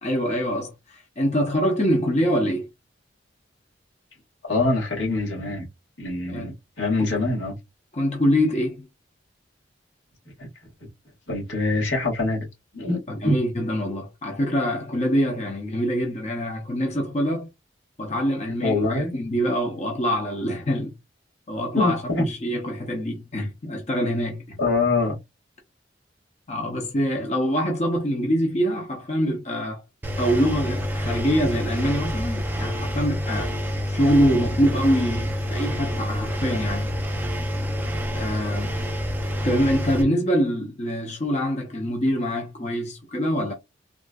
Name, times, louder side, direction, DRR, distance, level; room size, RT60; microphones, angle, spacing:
voice 1, 0.0-2.7 6.3-6.5 7.1-7.2 7.9-8.9 13.1-17.5 18.0-20.9 21.5-24.6 26.5-29.8 30.2-33.5 33.9-36.9 38.1-38.8 39.4-43.5, equal, 40° left, 0.8 m, -24 dB
voice 2, 4.4-5.7 6.0-7.5 10.4-10.5 11.3-12.5 12.7-13.4 18.6-19.1 21.7-22.2 24.6-25.2, left 2 dB, 90° left, 2.0 m, -24 dB
Engine, 30.0-40.0, equal, 10° right, 0.5 m, -27 dB
3.7 x 2.4 x 2.3 m
head